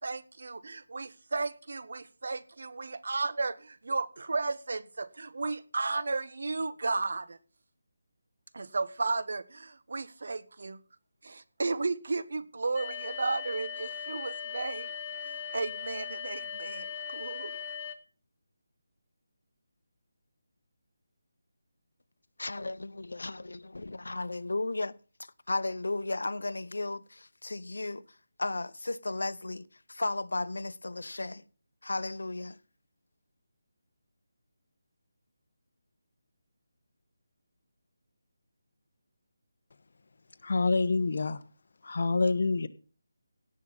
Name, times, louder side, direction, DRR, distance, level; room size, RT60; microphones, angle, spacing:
voice 1, 0.0-7.4 8.5-10.8 11.2-14.9 15.2-17.6, right 3 dB, 65° right, 1.0 m, -34 dB
sound 1, 12.8-18.0, left 7 dB, 25° left, 1.1 m, -39 dB
voice 2, 22.4-24.9 25.5-28.0 28.4-29.6 29.9-31.4 31.8-32.6, left 2 dB, 85° left, 0.8 m, -34 dB
voice 3, 40.4-41.4 41.8-42.7, left 3 dB, 55° left, 1.1 m, -27 dB
17.0 x 6.3 x 5.6 m
figure-of-eight pair, 170°, 0 cm